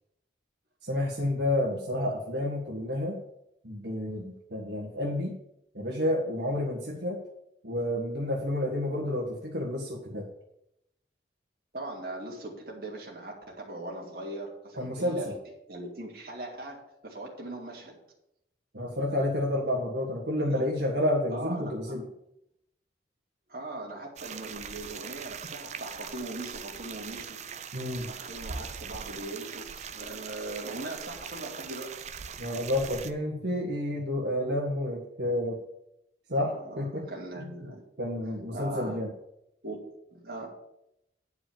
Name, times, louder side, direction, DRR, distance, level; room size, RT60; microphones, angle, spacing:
voice 1, 0.8-3.2 3.6-5.3 5.7-7.2 7.6-10.3 14.7-15.2 18.7-22.0 27.7-28.1 32.4-35.6 36.3-37.0 38.0-39.1, left 1 dB, 80° right, -2 dB, 1.6 m, -30 dB
voice 2, 11.7-15.3 15.7-18.0 20.4-20.6 21.3-22.0 23.5-27.4 28.1-32.0 36.4-37.8 38.5-39.0 39.6-39.8 40.1-40.5, right 2 dB, 55° right, -2 dB, 2.6 m, -40 dB
sound 1, 24.2-33.1, right 6 dB, 40° right, 0.5 m, -41 dB
9.7 x 4.9 x 7.3 m, 0.81 s
head